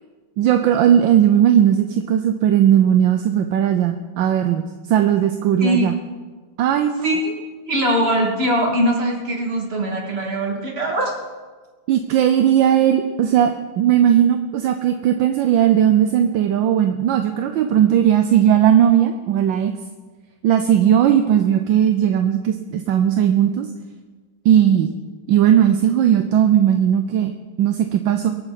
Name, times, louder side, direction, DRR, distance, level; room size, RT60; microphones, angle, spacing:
voice 1, 0.4-6.0 6.6-7.3 11.9-19.7 20.4-23.7 24.4-24.9 25.3-27.3 27.6-28.3, right 10 dB, 75° right, 7 dB, 1.4 m, -17 dB
voice 2, 7.7-11.1, equal, 30° right, 0 dB, 2.4 m, -21 dB
23.5 x 9.0 x 4.1 m, 1.4 s
omnidirectional pair, 2.2 m